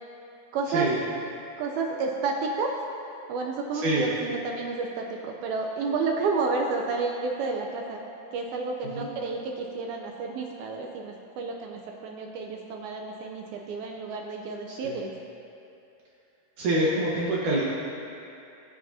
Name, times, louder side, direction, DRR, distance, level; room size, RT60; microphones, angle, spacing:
voice 1, 0.5-0.9 1.6-2.7 3.3-8.0 8.3-15.1, right 4 dB, 80° right, 1 dB, 2.2 m, -30 dB
voice 2, 3.7-4.1 8.9-9.1 14.7-15.0 16.6-17.6, right 1 dB, 65° right, -6 dB, 2.2 m, -26 dB
22.0 x 7.6 x 2.8 m, 2.7 s
omnidirectional pair, 4.9 m